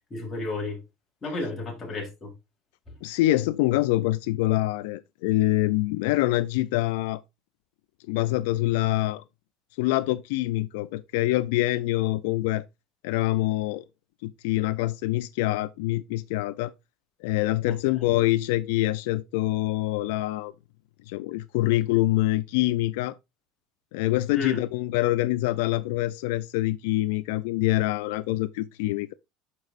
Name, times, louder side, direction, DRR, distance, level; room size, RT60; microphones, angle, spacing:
voice 1, 0.1-0.8 1.2-2.3 17.6-17.8 24.3-24.6, left 3 dB, 20° left, 3.9 m, -32 dB
voice 2, 3.0-7.2 8.1-9.2 9.8-12.6 13.0-13.8 14.2-16.7 17.2-20.5 21.1-23.1 23.9-29.1, left 17 dB, 85° left, 0.4 m, -25 dB
11.0 x 5.3 x 2.5 m
supercardioid pair, 130°, 0 cm